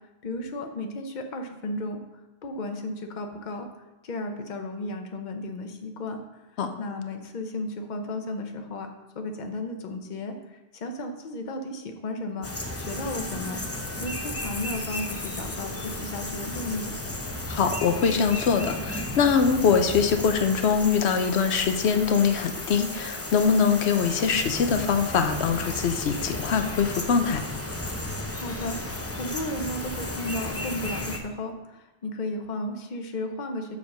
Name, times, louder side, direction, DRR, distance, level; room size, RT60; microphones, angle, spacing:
voice 1, 0.2-2.0 2.4-3.7 4.0-6.4 6.8-8.9 9.1-13.6 14.0-16.9 28.3-33.8, left 1 dB, 50° left, 4 dB, 0.9 m, -34 dB
sound 1, 12.4-31.2, left 1 dB, 15° left, 0.6 m, -34 dB
voice 2, 17.5-27.4, left 6 dB, 90° left, 7 dB, 1.0 m, -23 dB
7.1 x 4.8 x 6.4 m, 1.0 s
omnidirectional pair, 1.1 m